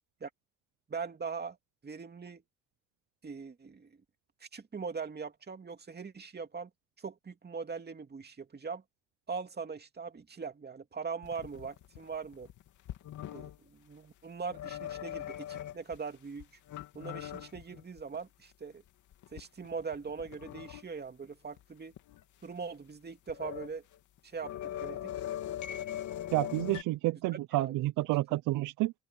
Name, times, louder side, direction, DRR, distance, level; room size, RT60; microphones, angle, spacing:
voice 1, 0.9-1.6 1.8-2.4 3.2-4.0 4.4-6.7 7.0-8.8 9.3-12.5 13.3-16.5 16.9-18.8 19.3-21.9 22.4-23.8 24.2-24.5 24.8-25.1 27.6-27.8, right 5 dB, 35° right, 2.6 m, -41 dB
sound 1, 11.2-13.6 14.5-16.0 16.4-18.2 18.5-18.6 19.1-20.8 21.2-21.3 21.6-21.7 21.9-22.2 23.1-23.7 23.9-26.8, left 11 dB, 80° left, 2.9 m, -41 dB
voice 2, 26.3-28.9, right 18 dB, 90° right, 0.5 m, -30 dB
open air
cardioid pair, 90°, 30 cm